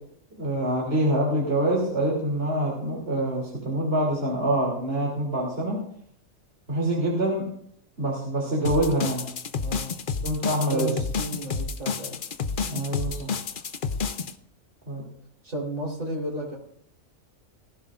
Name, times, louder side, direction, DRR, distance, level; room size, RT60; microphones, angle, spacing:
voice 1, 0.4-5.8 6.7-7.5 8.0-9.2 10.2-10.9 12.6-13.3 14.9-15.0, right 1 dB, 45° right, -3 dB, 3.4 m, -25 dB
sound 1, 8.6-14.3, left 5 dB, 45° left, 0.8 m, -30 dB
voice 2, 9.5-9.9 10.7-12.2 15.4-16.6, right 1 dB, 70° right, -1 dB, 4.2 m, -32 dB
19.5 x 15.0 x 2.5 m, 0.67 s
omnidirectional pair, 1.4 m